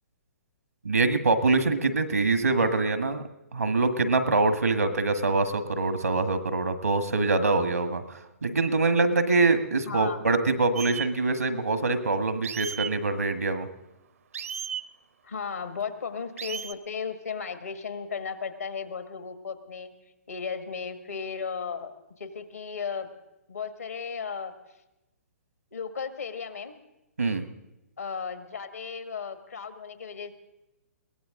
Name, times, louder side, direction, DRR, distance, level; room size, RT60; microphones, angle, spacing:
voice 1, 0.8-3.2 3.5-13.7 27.2-27.5, right 3 dB, 90° right, 9 dB, 1.6 m, -24 dB
voice 2, 9.8-10.2 15.2-19.9 20.3-23.1 23.5-24.5 25.7-26.8 28.0-30.3, left 6 dB, 85° left, 9 dB, 1.7 m, -35 dB
sound 1, 10.8-11.1 12.4-12.9 14.3-14.8 16.4-16.7, right 8 dB, 70° right, 0.7 m, -34 dB
22.0 x 17.5 x 3.8 m, 0.95 s
hypercardioid pair, 130°, 8 cm